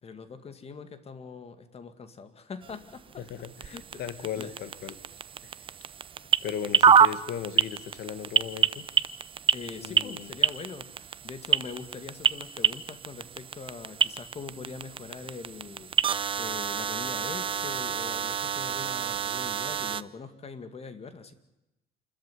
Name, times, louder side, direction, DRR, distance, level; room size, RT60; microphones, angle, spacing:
voice 1, 0.0-3.0 3.6-4.5 9.5-21.3, left 5 dB, 35° left, 10 dB, 2.1 m, -43 dB
sound 1, 2.6-20.0, right 7 dB, 30° right, 0.7 m, -28 dB
voice 2, 3.2-5.0 5.4-5.5 6.4-8.9 9.8-10.4, left 9 dB, 70° left, 11 dB, 1.9 m, -37 dB
27.5 x 13.5 x 9.7 m, 0.93 s
cardioid pair, 110°, 17 cm